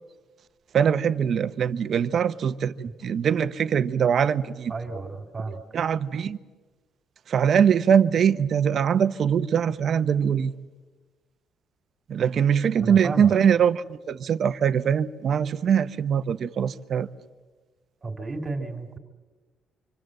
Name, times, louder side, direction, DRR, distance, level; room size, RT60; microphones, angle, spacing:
voice 1, 0.7-4.7 5.7-6.4 7.3-10.5 12.1-17.1, right 8 dB, 50° right, 0.9 m, -22 dB
voice 2, 4.7-5.6 12.8-13.3 18.0-19.0, right 3 dB, 25° right, 2.7 m, -32 dB
26.0 x 26.0 x 7.8 m
cardioid pair, 130°, 0 cm